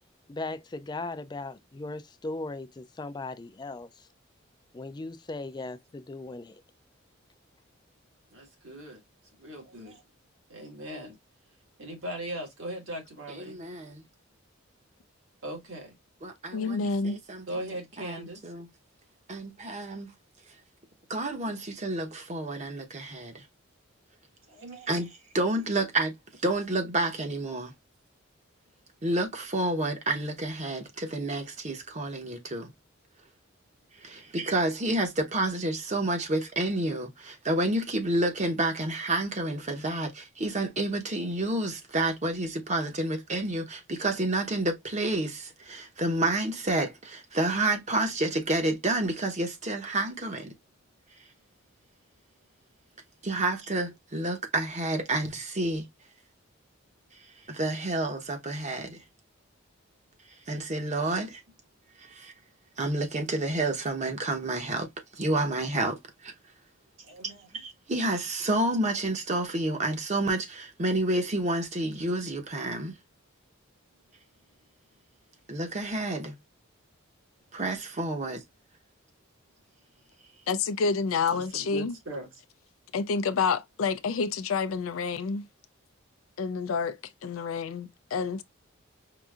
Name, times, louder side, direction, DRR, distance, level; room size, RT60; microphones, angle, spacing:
voice 1, 0.3-4.1 4.7-6.6, left 2 dB, 20° left, 0.3 m, -38 dB
voice 2, 8.3-9.0 9.4-10.0 10.5-11.2 11.8-13.6 15.4-15.9 17.5-18.4 24.5-24.9 34.1-34.3 67.0-67.6 81.3-82.3, right 1 dB, 70° right, 1.8 m, -39 dB
voice 3, 13.3-14.0 16.2-17.5 18.0-18.7 19.3-20.1 21.1-23.4 24.9-26.1 26.4-27.7 29.0-32.7 34.0-50.5 53.2-55.9 57.5-59.0 60.5-61.4 62.2-62.3 62.8-66.3 67.5-72.9 75.5-76.3 77.5-78.4, right 2 dB, 35° right, 0.9 m, -29 dB
voice 4, 16.5-17.2 80.5-82.0 82.9-85.4 86.4-88.4, left 5 dB, 85° left, 0.4 m, -28 dB
4.9 x 2.6 x 2.3 m
head